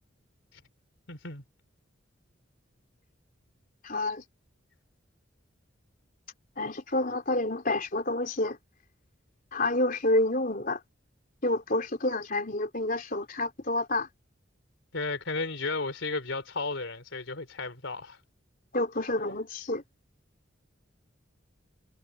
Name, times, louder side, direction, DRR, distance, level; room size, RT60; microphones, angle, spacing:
voice 1, 1.1-1.4 14.9-18.2, left 3 dB, 90° left, 3.3 m, -34 dB
voice 2, 3.8-4.2 6.6-8.6 9.5-10.8 11.4-14.1 18.7-19.8, left 2 dB, 45° left, 3.6 m, -28 dB
head